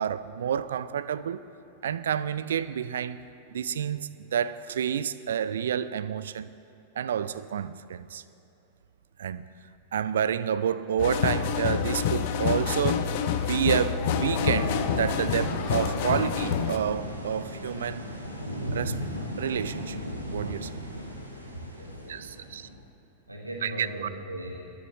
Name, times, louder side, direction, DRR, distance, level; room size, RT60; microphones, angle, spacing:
voice 1, 0.0-1.4 1.8-3.2 3.5-6.5 7.0-8.2 9.2-9.5 9.9-13.0 13.4-18.0 18.7-19.0 19.4-20.0 20.3-20.8 22.1-22.7 23.6-24.1, right 8 dB, 65° right, 0.4 m, -29 dB
sound 1, 11.0-16.8, left 8 dB, 50° left, 0.7 m, -27 dB
sound 2, 14.0-22.8, equal, 90° left, 1.3 m, -35 dB
voice 2, 21.8-22.3 23.3-24.5, right 1 dB, 85° right, 1.5 m, -38 dB
21.5 x 11.0 x 3.0 m
figure-of-eight pair, 90°, 0 cm